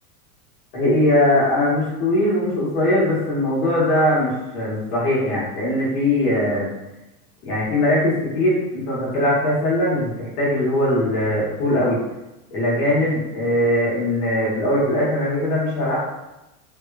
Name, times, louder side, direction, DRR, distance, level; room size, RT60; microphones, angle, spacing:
voice 1, 0.7-6.7 7.4-12.0 12.5-16.0, left 1 dB, 90° left, -7 dB, 1.2 m, -20 dB
3.0 x 2.1 x 2.3 m, 0.97 s
supercardioid pair, 180°, 44 cm